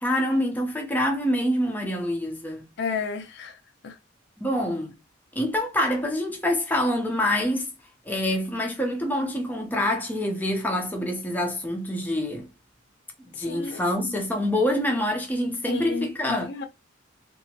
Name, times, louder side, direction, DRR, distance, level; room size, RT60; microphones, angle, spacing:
voice 1, 0.0-2.7 4.4-4.9 5.3-7.7 8.1-12.5 13.2-16.5, left 1 dB, 10° left, 0.6 m, -26 dB
voice 2, 2.8-3.6 3.8-4.0 13.4-14.2 15.7-16.6, left 5 dB, 60° left, 0.4 m, -32 dB
2.8 x 2.6 x 2.8 m
head